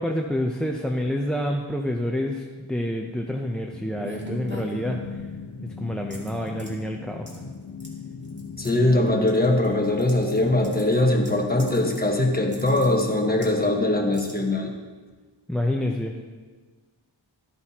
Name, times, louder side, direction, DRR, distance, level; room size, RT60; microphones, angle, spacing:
voice 1, 0.0-5.0 5.8-7.4 15.5-16.3, left 1 dB, ahead, 2 dB, 0.6 m, -28 dB
sound 1, 3.7-14.5, left 5 dB, 55° left, 1.2 m, -38 dB
sound 2, 4.0-5.3 6.1-6.7 7.3-7.5 7.8-7.9 8.2-8.7 9.3-10.4 10.6-12.1 12.4-13.6 14.1-14.3, right 1 dB, 20° right, 2.3 m, -41 dB
voice 2, 8.6-14.7, left 1 dB, 20° left, 1 dB, 1.3 m, -21 dB
13.5 x 8.8 x 2.9 m, 1.4 s
wide cardioid pair, 65°, 49 cm